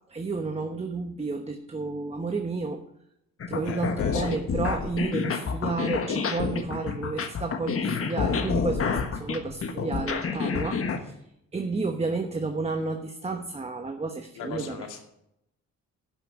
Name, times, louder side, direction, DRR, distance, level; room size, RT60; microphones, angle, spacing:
voice 1, 0.1-2.8 3.5-11.2 11.5-14.9, right 3 dB, 20° right, 5 dB, 1.1 m, -31 dB
sound 1, 3.4-11.0, left 5 dB, 45° left, 1.4 m, -28 dB
voice 2, 3.6-4.4 14.4-15.0, left 6 dB, 85° left, 3 dB, 2.4 m, -38 dB
12.0 x 5.9 x 7.9 m, 0.78 s
cardioid pair, 90°, 30 cm